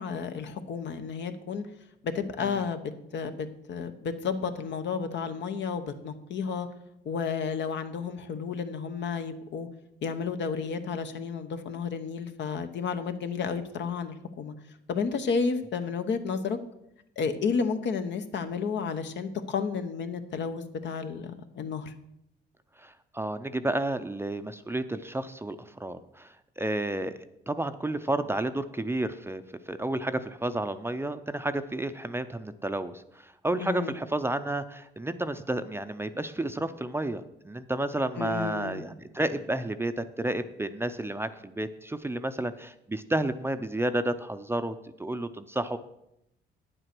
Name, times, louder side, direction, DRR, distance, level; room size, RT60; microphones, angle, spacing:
voice 1, 0.0-1.7 2.0-6.7 7.0-9.7 10.0-14.5 14.9-16.6 17.2-21.9 33.6-34.0 38.2-38.8, left 5 dB, 65° left, 8 dB, 1.0 m, -32 dB
voice 2, 22.8-27.2 27.5-45.8, right 1 dB, 10° right, 10 dB, 0.5 m, -31 dB
9.3 x 7.8 x 6.0 m, 0.82 s
cardioid pair, 90°, 20 cm